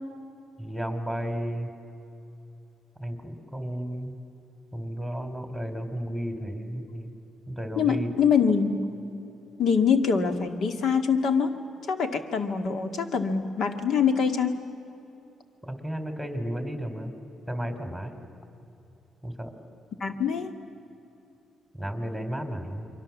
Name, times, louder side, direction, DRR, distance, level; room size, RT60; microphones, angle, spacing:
voice 1, 0.6-1.7 3.0-4.2 4.7-7.1 7.5-8.1 15.6-17.2 17.5-18.2 19.2-19.5 21.7-22.9, equal, 5° left, 5 dB, 3.7 m, -33 dB
voice 2, 7.8-8.8 9.6-11.6 11.9-14.6 20.0-20.5, left 6 dB, 65° left, 7 dB, 2.0 m, -24 dB
29.0 x 23.0 x 7.3 m, 2.8 s
cardioid pair, 90°, 0 cm